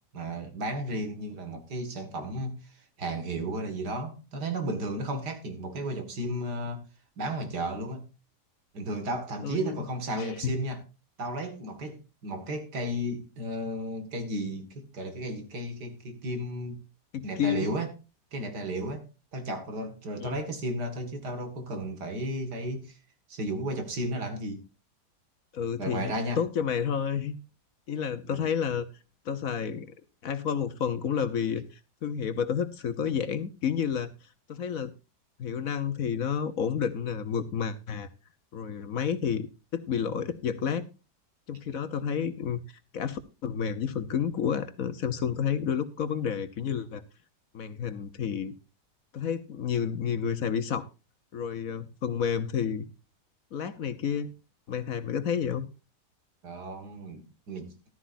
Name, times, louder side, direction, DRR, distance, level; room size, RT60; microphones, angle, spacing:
voice 1, 0.1-6.8 7.2-8.1 8.7-10.8 11.2-16.8 17.2-17.9 18.3-19.1 19.3-23.0 23.3-24.6 25.8-26.4 28.3-28.4 56.4-57.7, right 1 dB, 75° right, 2.6 m, -34 dB
voice 2, 9.4-9.8 10.2-10.5 17.1-17.8 20.2-20.4 25.5-27.4 27.9-28.9 29.2-29.9 30.2-34.1 34.5-34.9 35.4-38.1 38.5-40.9 41.5-42.6 42.9-47.0 47.5-48.5 49.1-50.9 51.3-52.8 53.5-54.3 54.7-55.7, left 7 dB, 60° left, 1.3 m, -30 dB
14.0 x 12.5 x 2.6 m
omnidirectional pair, 1.8 m